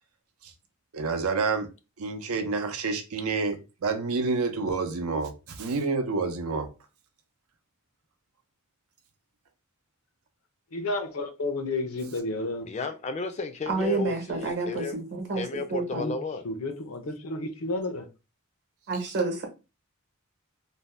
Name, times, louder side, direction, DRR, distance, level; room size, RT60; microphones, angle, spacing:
voice 1, 0.9-1.7 2.0-6.7, right 4 dB, 90° right, 0.6 m, -28 dB
voice 2, 10.7-12.7 15.9-16.2 16.4-18.1, left 2 dB, 80° left, 0.6 m, -31 dB
voice 3, 12.6-14.9 15.3-16.4, left 3 dB, 30° left, 0.3 m, -33 dB
voice 4, 13.7-15.4 15.7-16.0 18.9-19.5, right 3 dB, 55° right, 0.8 m, -29 dB
2.6 x 2.1 x 3.2 m
head